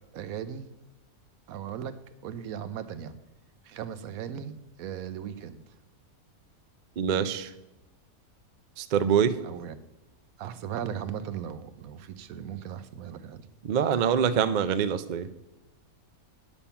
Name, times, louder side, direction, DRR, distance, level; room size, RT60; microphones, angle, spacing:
voice 1, 0.1-0.7 1.5-3.2 3.6-5.6 9.4-9.8 10.4-13.5, right 9 dB, 70° right, 13 dB, 1.1 m, -37 dB
voice 2, 7.0-7.5 8.8-9.4 13.6-15.3, right 8 dB, 90° right, 12 dB, 0.4 m, -25 dB
9.9 x 7.1 x 5.7 m, 0.99 s
omnidirectional pair, 1.6 m